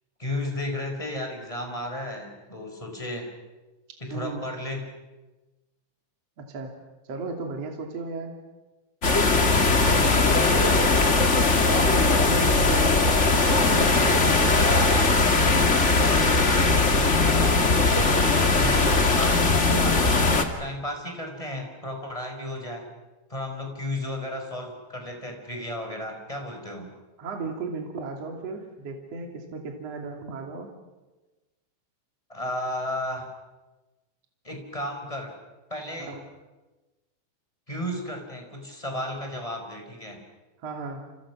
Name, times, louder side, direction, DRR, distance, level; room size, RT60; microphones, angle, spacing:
voice 1, 0.2-3.3 4.0-4.9 9.8-10.7 16.8-17.7 18.6-20.1 20.6-22.9 23.3-26.9 32.3-33.3 34.4-35.3 35.7-36.2 37.7-40.2, left 1 dB, 10° left, 3 dB, 5.2 m, -33 dB
voice 2, 4.1-4.4 6.4-6.8 7.1-8.4 11.6-14.5 27.2-30.7 36.0-36.2 40.6-41.0, right 3 dB, 45° right, 2 dB, 3.5 m, -35 dB
sound 1, 9.0-20.4, left 3 dB, 30° left, 1.4 m, -20 dB
29.5 x 29.5 x 6.2 m, 1.1 s
omnidirectional pair, 4.5 m